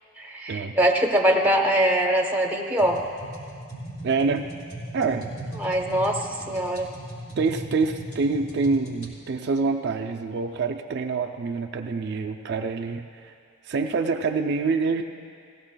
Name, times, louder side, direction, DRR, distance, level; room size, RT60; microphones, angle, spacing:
voice 1, 0.2-3.0 5.6-6.9, right 1 dB, 10° right, 1 dB, 0.8 m, -22 dB
sound 1, 2.8-9.1, right 1 dB, 50° left, 2.9 m, -38 dB
voice 2, 4.0-4.5 4.9-5.3 7.4-13.3 13.6-15.0, right 4 dB, 50° right, 4 dB, 0.4 m, -26 dB
19.0 x 16.0 x 2.2 m, 2.3 s
head